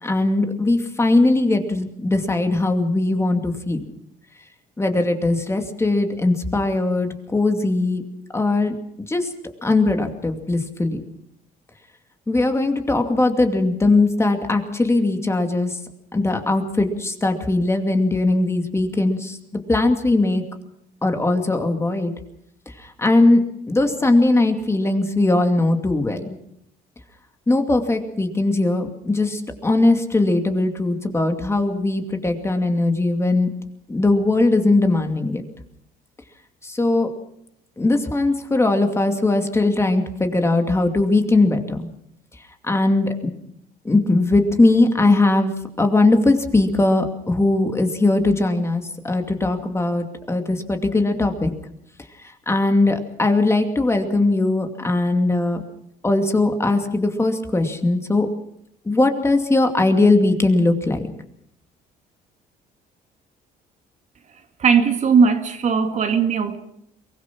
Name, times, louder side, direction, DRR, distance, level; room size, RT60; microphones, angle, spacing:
voice 1, 0.0-3.8 4.8-8.0 8.3-8.7 9.1-9.3 9.6-11.0 12.3-15.7 16.1-19.4 19.7-20.4 21.0-22.1 23.0-26.4 27.5-33.5 33.9-35.4 36.6-37.1 37.8-41.9 42.6-43.3 43.8-51.5 52.5-55.6 56.0-58.3 58.9-61.0, left 2 dB, 15° left, 2.5 m, -19 dB
voice 2, 64.6-66.6, right 6 dB, 45° right, 2.0 m, -18 dB
23.5 x 19.5 x 6.1 m
cardioid pair, 110°, 17 cm